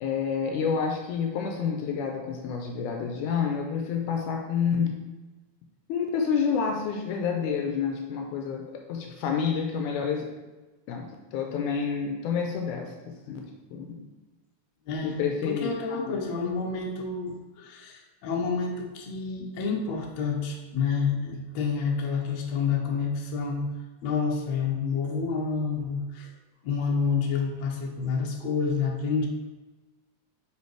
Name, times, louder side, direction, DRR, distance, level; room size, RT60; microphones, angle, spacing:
voice 1, 0.0-4.9 5.9-10.2 10.9-13.5 13.7-14.0 15.0-16.2, left 6 dB, 85° left, 2 dB, 2.1 m, -29 dB
voice 2, 14.9-23.7 24.0-26.3 26.6-29.3, left 5 dB, 70° left, 0 dB, 2.0 m, -29 dB
5.7 x 4.7 x 4.6 m, 1.2 s
omnidirectional pair, 3.5 m